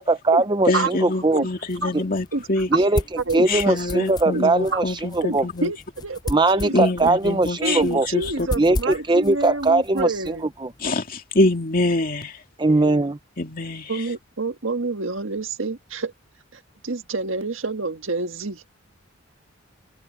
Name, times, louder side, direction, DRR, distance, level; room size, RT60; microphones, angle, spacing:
voice 1, 0.0-0.9 1.2-1.4 2.7-3.0 3.3-4.9 5.1-5.4 6.3-8.1 8.6-10.4 10.6-10.7 12.6-13.2, right 2 dB, 20° right, 0.6 m, -20 dB
voice 2, 0.7-2.7 3.4-5.7 6.7-8.5 8.9-9.0 10.8-12.4 13.4-14.1, left 2 dB, 45° left, 2.5 m, -25 dB
sound 1, 1.2-11.1, left 2 dB, 20° left, 0.6 m, -36 dB
voice 3, 5.2-5.8 6.0-6.2 6.5-6.7 7.6-10.5 13.9-16.1 16.5-18.6, right 3 dB, 70° right, 1.7 m, -27 dB
head